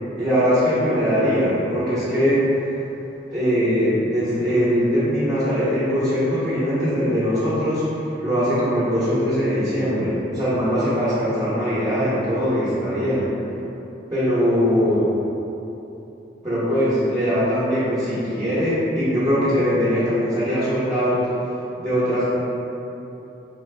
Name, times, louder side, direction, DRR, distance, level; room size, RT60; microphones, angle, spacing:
voice 1, 0.2-2.4 3.3-13.3 14.1-15.1 16.4-21.2 21.8-22.3, equal, 20° right, -15 dB, 1.0 m, -21 dB
4.9 x 2.3 x 3.3 m, 3.0 s
head